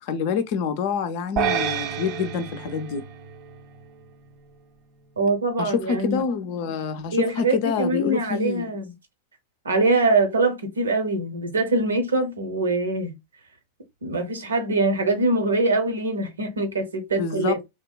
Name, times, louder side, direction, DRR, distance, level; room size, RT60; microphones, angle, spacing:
voice 1, 0.0-3.0 5.6-8.6 17.2-17.6, left 6 dB, 50° left, 0.4 m, -27 dB
sound 1, 1.4-3.8, right 7 dB, 35° right, 0.4 m, -29 dB
voice 2, 5.2-6.2 7.1-8.9 9.6-13.1 14.0-17.6, right 2 dB, 70° right, 0.6 m, -23 dB
2.8 x 2.1 x 2.2 m
figure-of-eight pair, 90°, 0 cm